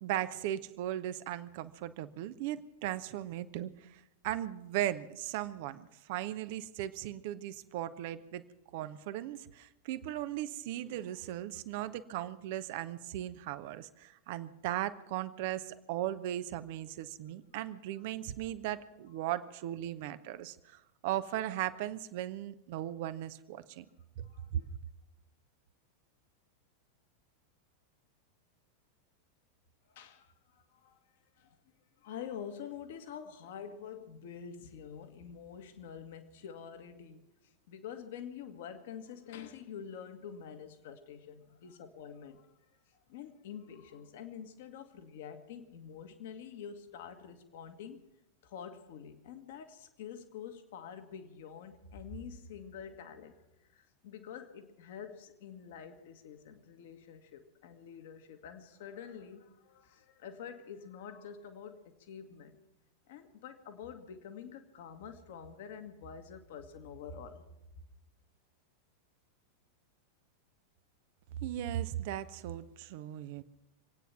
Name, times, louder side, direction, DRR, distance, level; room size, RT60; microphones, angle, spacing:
voice 1, 0.0-8.4 8.7-23.8 24.2-24.7 71.4-73.4, right 13 dB, 50° right, 0.9 m, -37 dB
voice 2, 29.9-31.0 31.4-31.6 32.0-37.3 37.7-42.5 43.1-48.1 48.4-53.4 53.7-62.6 63.1-67.4, left 7 dB, 55° left, 1.7 m, -47 dB
26.0 x 9.3 x 6.0 m
figure-of-eight pair, 90°, 0 cm